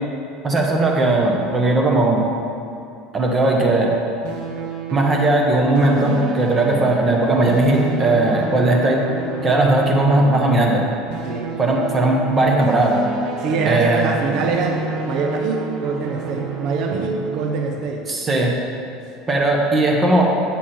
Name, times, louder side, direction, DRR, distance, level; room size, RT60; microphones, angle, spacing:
voice 1, 0.4-2.3 3.1-3.9 4.9-9.0 9.4-10.8 11.6-13.0 13.7-14.1 18.1-18.5 19.3-20.3, right 2 dB, 20° right, 0 dB, 1.0 m, -17 dB
sound 1, 4.2-17.7, right 4 dB, 70° right, 1.2 m, -30 dB
voice 2, 11.2-11.6 13.4-14.8 15.1-18.1, right 4 dB, 50° right, 2 dB, 0.7 m, -24 dB
7.6 x 7.2 x 4.3 m, 2.6 s
cardioid pair, 150°, 0 cm